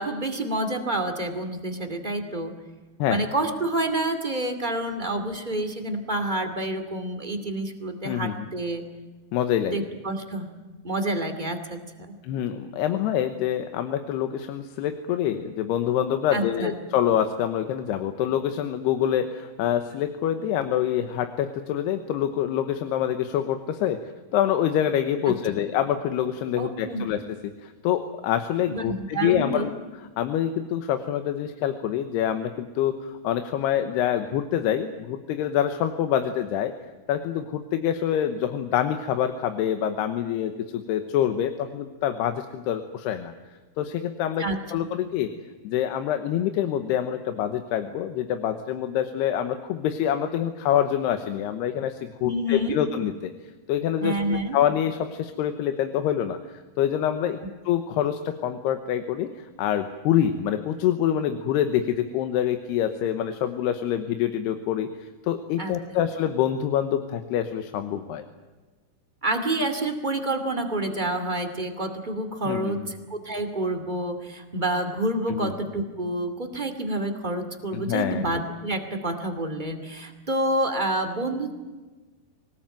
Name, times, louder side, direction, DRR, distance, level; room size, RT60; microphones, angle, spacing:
voice 1, 0.0-2.5 3.1-8.8 9.7-10.5 10.8-11.8 12.1-12.2 16.3-16.8 25.3-25.6 26.6-27.0 28.7-29.7 44.4-44.6 52.2-52.8 54.0-54.6 65.6-66.0 69.2-81.5, right 1 dB, 15° right, 5 dB, 1.7 m, -28 dB
voice 2, 8.1-8.5 9.3-9.9 12.2-27.2 27.6-29.7 30.2-36.7 37.1-43.3 43.8-44.4 44.7-45.3 45.6-53.3 53.7-56.4 56.8-57.4 57.7-68.2 72.5-72.9 75.3-75.5 77.7-78.2, left 10 dB, 90° left, 7 dB, 3.2 m, -26 dB
24.5 x 19.5 x 9.1 m, 1.3 s
omnidirectional pair, 4.6 m